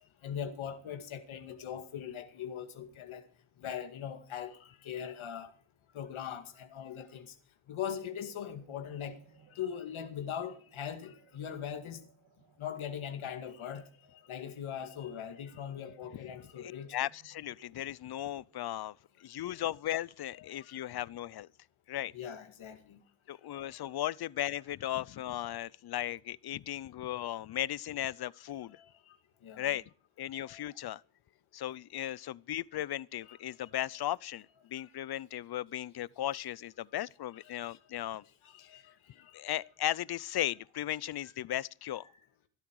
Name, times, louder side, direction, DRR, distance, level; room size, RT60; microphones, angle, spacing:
voice 1, 0.2-3.2 3.6-5.5 5.9-7.3 7.7-9.2 9.5-12.1 12.6-17.0 19.4-19.6 20.6-20.7 22.1-23.0 23.5-23.7 28.7-29.2 29.4-29.7 30.3-30.6 33.3-33.4 34.8-34.9 37.7-38.0 38.4-39.5, left 8 dB, 75° left, 2.2 m, -41 dB
sound 1, 7.8-19.1, right 4 dB, 60° right, 3.1 m, -65 dB
voice 2, 16.6-18.9 19.2-21.5 21.9-22.1 23.3-28.8 29.6-29.8 30.2-31.0 31.5-38.2 38.6-38.7 39.3-42.1, left 13 dB, 50° left, 0.6 m, -36 dB
15.0 x 13.0 x 4.7 m
cardioid pair, 105°, 48 cm